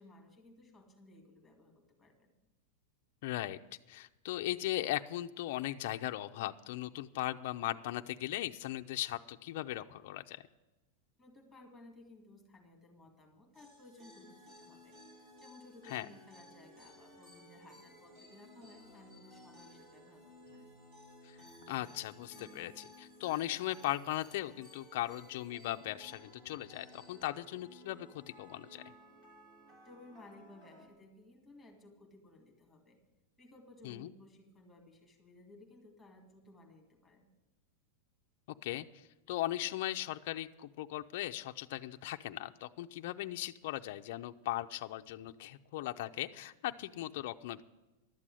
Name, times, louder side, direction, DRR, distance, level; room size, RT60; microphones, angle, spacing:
voice 1, 0.0-2.3 11.2-20.7 29.8-33.0 33.4-37.3, left 2 dB, ahead, 0 dB, 2.2 m, -58 dB
voice 2, 3.2-3.6 3.9-10.4 15.9-16.1 21.2-21.4 21.7-28.8 33.8-34.1 38.6-47.6, left 15 dB, 45° left, 6 dB, 0.5 m, -38 dB
sound 1, 13.5-30.9, equal, 25° right, 2.7 m, -57 dB
12.0 x 7.6 x 9.9 m, 1.1 s
supercardioid pair, 180°, 0 cm